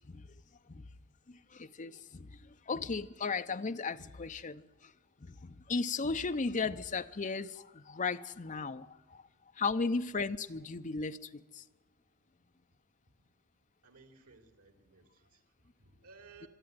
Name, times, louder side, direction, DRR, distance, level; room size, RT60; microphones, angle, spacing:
voice 1, 1.3-2.4 2.7-4.6 5.2-9.2 9.6-11.6, left 4 dB, 35° left, 0.6 m, -35 dB
voice 2, 13.8-16.5, right 4 dB, 90° right, 3.3 m, -59 dB
21.5 x 13.0 x 9.4 m
head